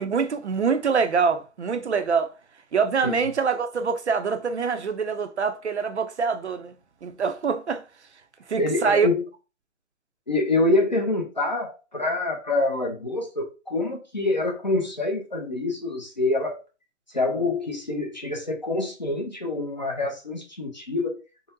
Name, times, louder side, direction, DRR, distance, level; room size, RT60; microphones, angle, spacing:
voice 1, 0.0-2.3 2.7-6.7 7.0-7.8 8.5-9.1, right 5 dB, 60° right, 0.5 m, -24 dB
voice 2, 8.6-9.2 10.3-16.6 17.1-21.2, left 2 dB, 35° left, 0.6 m, -26 dB
3.7 x 2.1 x 2.6 m
hypercardioid pair, 170°, 38 cm